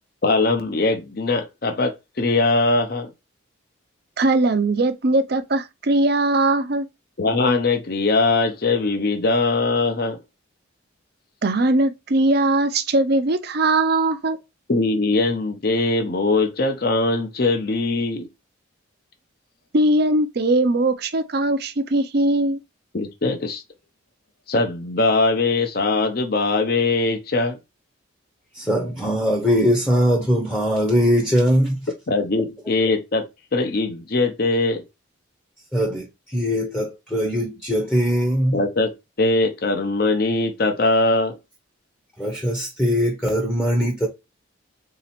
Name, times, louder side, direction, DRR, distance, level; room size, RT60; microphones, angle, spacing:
voice 1, 0.2-3.1 7.2-10.2 14.7-18.3 22.9-23.6 24.5-27.6 32.1-33.3 33.5-34.8 38.5-38.9 39.2-41.4, left 3 dB, 45° left, 0.7 m, -21 dB
voice 2, 4.2-6.9 11.4-14.4 19.7-22.6, right 2 dB, 50° right, 0.6 m, -20 dB
voice 3, 28.5-31.9 35.7-38.6 42.2-44.1, equal, 5° left, 0.8 m, -21 dB
4.1 x 2.8 x 4.2 m
head